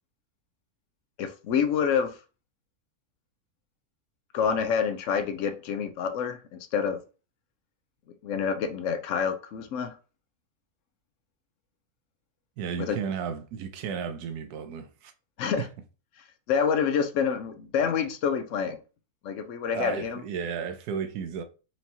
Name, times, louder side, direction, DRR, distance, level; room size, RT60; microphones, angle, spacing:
voice 1, 1.2-2.1 4.3-7.0 8.2-9.9 12.8-13.0 15.4-15.7 16.5-18.8 19.2-20.2, left 7 dB, 65° left, 0.8 m, -27 dB
voice 2, 12.6-15.1 15.6-15.7 19.7-21.4, right 7 dB, 85° right, 1.1 m, -33 dB
4.5 x 2.8 x 2.8 m
omnidirectional pair, 1.6 m